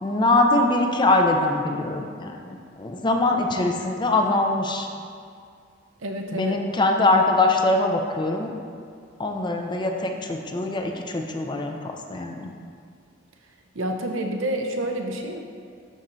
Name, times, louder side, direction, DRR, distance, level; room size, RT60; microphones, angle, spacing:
voice 1, 0.0-4.9 6.3-8.5 9.2-12.5, left 2 dB, 25° left, 3 dB, 0.4 m, -23 dB
voice 2, 6.0-6.6 13.7-15.4, right 1 dB, 90° right, 3 dB, 0.7 m, -28 dB
11.5 x 4.2 x 2.6 m, 2.2 s
head